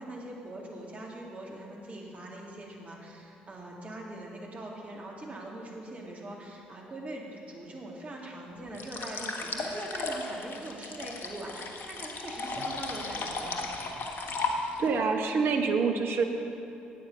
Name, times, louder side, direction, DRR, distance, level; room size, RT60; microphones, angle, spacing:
voice 1, 0.0-13.7, right 1 dB, 30° right, -1 dB, 2.5 m, -42 dB
sound 1, 8.7-15.0, left 3 dB, 55° left, 1.3 m, -35 dB
voice 2, 14.5-16.2, right 5 dB, 55° right, 4 dB, 1.2 m, -27 dB
10.0 x 8.7 x 6.9 m, 3.0 s
figure-of-eight pair, 50°, 4 cm